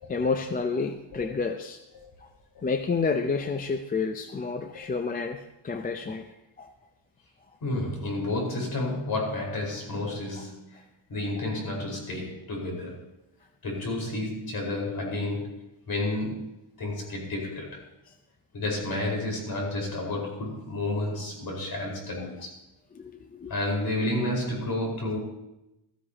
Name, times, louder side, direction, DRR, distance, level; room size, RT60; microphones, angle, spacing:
voice 1, 0.1-1.8 2.6-6.2 6.6-6.7 22.9-23.5, left 4 dB, 20° left, 7 dB, 0.5 m, -29 dB
voice 2, 2.5-3.0 7.6-10.8 11.1-13.0 13.6-16.5 16.8-17.8 18.5-22.5 23.5-25.2, left 2 dB, 45° left, -1 dB, 4.8 m, -31 dB
15.0 x 14.5 x 2.9 m, 0.90 s
cardioid pair, 140°, 49 cm